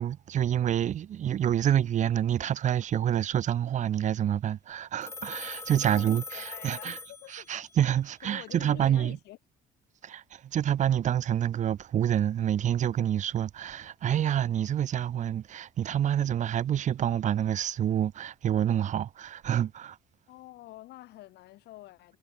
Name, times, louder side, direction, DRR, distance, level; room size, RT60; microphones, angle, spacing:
voice 1, 0.0-7.0 7.3-9.2 10.0-20.0, right 10 dB, 45° right, 0.7 m, -27 dB
Telephone, 5.0-7.8, left 4 dB, 15° left, 0.4 m, -42 dB
voice 2, 5.7-7.7 8.2-9.4 20.3-22.2, left 16 dB, 80° left, 4.5 m, -48 dB
cardioid pair, 110°, 17 cm